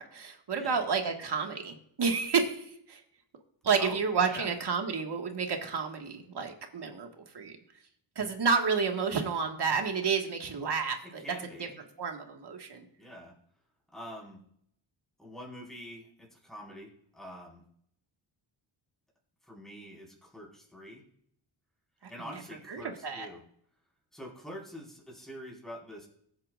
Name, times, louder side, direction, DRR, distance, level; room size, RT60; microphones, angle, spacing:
voice 1, 0.0-3.0 3.6-7.1 7.3-7.6 8.2-11.2 11.6-11.7 12.0-12.9 22.0-22.1 22.7-23.3, right 5 dB, 60° right, 3 dB, 1.7 m, -30 dB
voice 2, 3.8-4.5 11.0-11.8 13.0-13.3 13.9-14.4 15.2-17.6 19.5-21.0 22.1-23.4 24.1-26.1, equal, ahead, -4 dB, 4.8 m, -45 dB
21.5 x 8.7 x 2.5 m, 0.70 s
wide cardioid pair, 100°, 47 cm